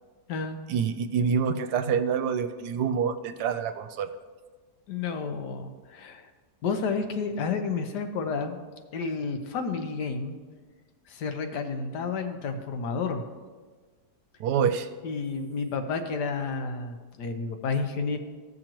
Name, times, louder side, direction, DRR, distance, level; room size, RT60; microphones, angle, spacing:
voice 1, 0.7-4.1 14.4-14.9, right 7 dB, 75° right, 10 dB, 1.1 m, -26 dB
voice 2, 4.9-6.3 6.6-8.6 8.9-10.4 11.1-13.2 15.0-18.2, left 4 dB, 75° left, 6 dB, 1.4 m, -31 dB
15.5 x 6.4 x 3.0 m, 1.4 s
omnidirectional pair, 1.8 m